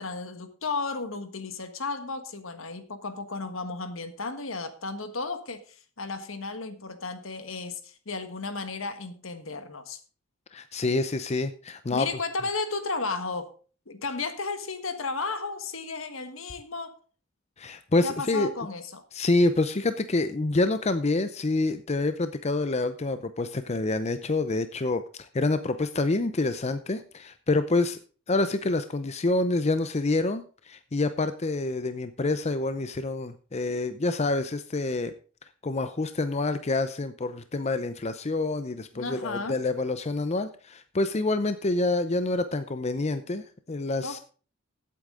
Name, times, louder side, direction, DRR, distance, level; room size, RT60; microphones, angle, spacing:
voice 1, 0.0-10.0 11.9-13.5 13.9-17.0 18.0-19.0 38.9-39.6 44.0-44.2, left 3 dB, 75° left, 9 dB, 1.5 m, -34 dB
voice 2, 10.5-12.1 17.6-18.5 19.1-28.0 28.3-35.1 35.6-44.2, left 2 dB, 30° left, 10 dB, 0.6 m, -27 dB
15.5 x 8.4 x 3.8 m, 0.38 s
head